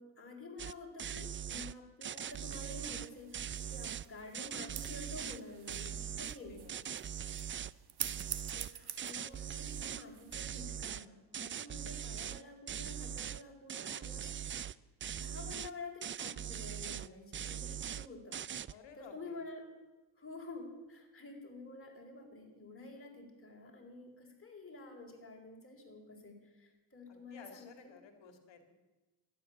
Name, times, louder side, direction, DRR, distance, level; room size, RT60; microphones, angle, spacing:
voice 1, 0.0-6.6 8.5-14.7 15.2-18.4 19.0-19.7 20.2-28.0, left 2 dB, 30° left, 0 dB, 4.4 m, -50 dB
sound 1, 0.6-0.7 1.0-1.7 2.0-4.0 4.3-5.4 5.7-6.4 6.7-7.7 8.0-10.0 10.3-11.0 11.3-12.4 12.7-13.4 13.7-14.7 15.0-15.7 16.0-17.1 17.3-18.1 18.3-18.7, right 9 dB, 30° right, 0.4 m, -41 dB
sound 2, 2.2-10.4, right 9 dB, 55° right, 1.3 m, -48 dB
voice 2, 6.3-7.4 18.7-19.4 27.1-28.7, left 6 dB, 70° left, 6 dB, 2.3 m, -56 dB
12.0 x 10.5 x 7.2 m, 1.1 s
supercardioid pair, 65°, 45 cm